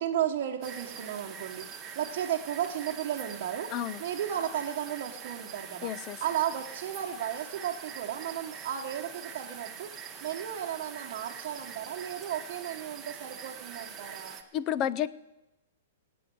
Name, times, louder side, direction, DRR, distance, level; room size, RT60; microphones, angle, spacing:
voice 1, 0.0-3.7 4.0-5.9 6.2-9.9 10.2-14.4, right 10 dB, 35° right, 1.1 m, -34 dB
sound 1, 0.6-14.4, right 7 dB, 10° right, 0.9 m, -44 dB
voice 2, 3.7-4.0 5.8-6.2 14.5-15.1, left 10 dB, 20° left, 0.5 m, -31 dB
18.5 x 8.6 x 7.8 m
hypercardioid pair, 175°, 0 cm